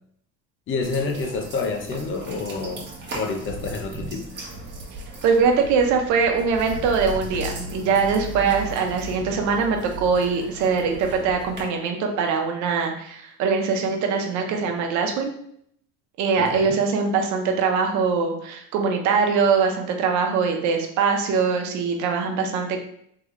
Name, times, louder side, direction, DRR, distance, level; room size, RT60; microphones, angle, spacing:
voice 1, 0.7-4.3 16.4-16.8, left 4 dB, 40° left, 4 dB, 0.8 m, -28 dB
sound 1, 0.8-11.6, right 2 dB, 35° right, 1.3 m, -36 dB
voice 2, 5.2-15.3 16.2-22.8, right 5 dB, 70° right, 3 dB, 0.9 m, -22 dB
3.8 x 3.5 x 3.2 m, 0.68 s
cardioid pair, 120°, 30 cm